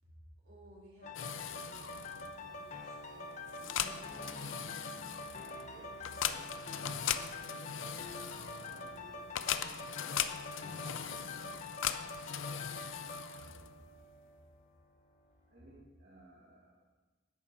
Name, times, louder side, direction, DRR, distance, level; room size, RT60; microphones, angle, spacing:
voice 1, 0.0-4.0 5.7-5.9 10.2-10.6 11.0-13.5, right 1 dB, 80° right, -6 dB, 4.3 m, -60 dB
sound 1, 1.0-14.7 15.2-15.3, left 2 dB, 35° left, 1.0 m, -46 dB
sound 2, 1.1-13.9, left 9 dB, 70° left, 0.5 m, -40 dB
voice 2, 3.6-5.2 5.4-8.1 8.5-10.0 10.7-11.5 15.5-16.9, right 1 dB, 50° right, -5 dB, 1.7 m, -58 dB
11.0 x 8.5 x 5.4 m, 1.2 s
head